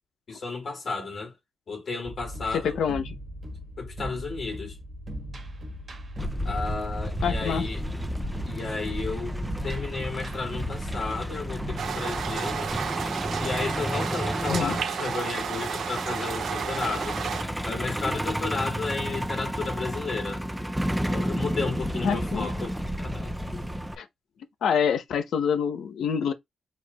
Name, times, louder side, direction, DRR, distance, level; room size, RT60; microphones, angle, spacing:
voice 1, 0.3-1.3 1.7-2.8 3.8-4.8 6.4-7.8 8.5-12.8 13.4-17.2 17.6-20.4 21.1-23.6, left 4 dB, 40° left, 2.5 m, -33 dB
sound 1, 2.0-11.8, equal, 30° right, 1.3 m, -38 dB
voice 2, 2.5-3.1 7.2-7.6 14.5-14.8 22.0-22.5 24.0-24.1 24.6-26.3, left 7 dB, 75° left, 0.7 m, -26 dB
Truck, 6.2-24.0, equal, 5° right, 0.4 m, -32 dB
sound 2, 11.8-17.4, right 7 dB, 55° right, 0.7 m, -32 dB
4.6 x 4.3 x 2.3 m
wide cardioid pair, 170°, 0 cm